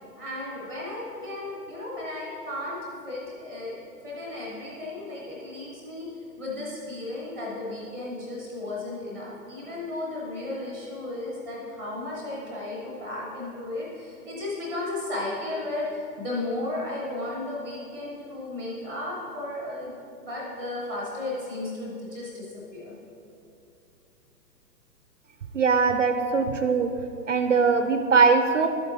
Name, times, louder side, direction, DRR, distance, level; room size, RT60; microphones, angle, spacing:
voice 1, 0.2-3.8 4.0-6.1 6.4-19.9 20.2-23.0, left 2 dB, 5° left, -4 dB, 0.6 m, -34 dB
voice 2, 25.5-26.9 27.3-28.7, right 5 dB, 50° right, 7 dB, 0.5 m, -21 dB
11.5 x 8.0 x 2.8 m, 2.7 s
figure-of-eight pair, 125°, 50 cm